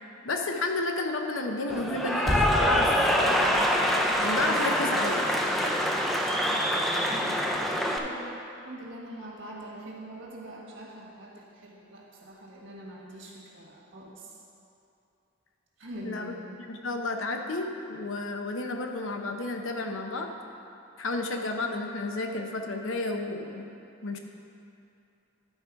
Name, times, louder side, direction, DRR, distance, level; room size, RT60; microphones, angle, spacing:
voice 1, 0.2-3.7 4.2-5.2 16.0-16.3 16.7-20.3 21.0-23.7 24.0-24.2, left 2 dB, 75° left, 4 dB, 0.7 m, -31 dB
Cheering / Applause, 1.7-8.0, equal, ahead, 0.4 m, -25 dB
voice 2, 7.1-8.4 8.6-14.4 15.8-16.7, right 1 dB, 70° right, -4 dB, 1.7 m, -43 dB
11.5 x 4.5 x 4.7 m, 2.7 s
head